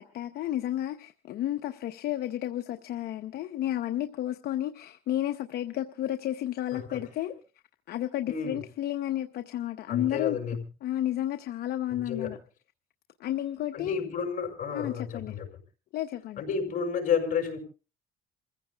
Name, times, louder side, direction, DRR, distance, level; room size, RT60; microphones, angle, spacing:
voice 1, 0.0-7.3 7.9-10.4 10.8-12.4 13.2-14.1 14.7-15.4 15.9-16.4, left 13 dB, 70° left, 0.8 m, -32 dB
voice 2, 8.3-8.6 9.9-10.6 11.9-12.3 13.7-15.5 16.4-17.6, left 6 dB, 50° left, 5.9 m, -31 dB
28.5 x 15.5 x 2.3 m
cardioid pair, 110°, 17 cm